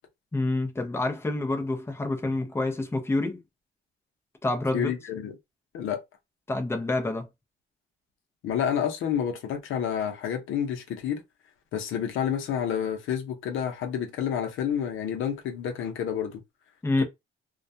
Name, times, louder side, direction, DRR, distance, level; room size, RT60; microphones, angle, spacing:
voice 1, 0.3-3.4 4.4-4.9 6.5-7.3 16.8-17.0, left 2 dB, 10° left, 0.6 m, -27 dB
voice 2, 4.7-5.3 5.7-6.0 8.4-11.2 11.7-16.4 17.0-17.1, left 8 dB, 80° left, 0.7 m, -29 dB
2.3 x 2.2 x 2.6 m
cardioid pair, 90°, 20 cm